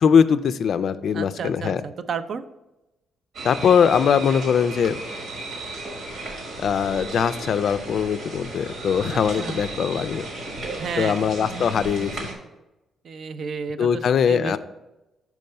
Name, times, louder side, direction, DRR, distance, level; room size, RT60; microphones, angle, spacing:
voice 1, 0.0-1.8 3.4-5.0 6.6-10.3 11.0-12.1 13.8-14.6, left 7 dB, 60° left, 12 dB, 0.3 m, -21 dB
voice 2, 1.1-2.4 9.1-9.6 10.8-11.3 13.0-14.6, right 5 dB, 55° right, 11 dB, 0.4 m, -32 dB
sound 1, 3.3-12.3, right 2 dB, 75° right, 1.5 m, -34 dB
5.3 x 4.6 x 5.5 m, 0.98 s
cardioid pair, 90°, 0 cm